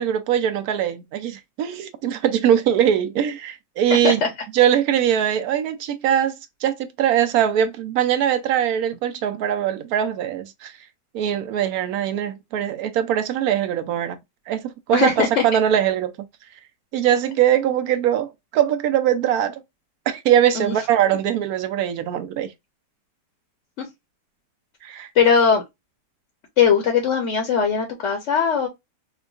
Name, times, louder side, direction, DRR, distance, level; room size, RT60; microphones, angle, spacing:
voice 1, 0.0-4.2 4.5-6.3 6.6-10.7 11.1-14.2 14.5-16.1 16.9-19.6 20.1-22.5 24.8-25.1, right 10 dB, 70° right, 0.9 m, -21 dB
voice 2, 3.9-4.3 14.9-15.4 20.5-20.7 23.8-23.9 25.1-25.6 26.6-28.7, left 6 dB, 55° left, 0.8 m, -19 dB
4.5 x 2.2 x 2.4 m
omnidirectional pair, 1.8 m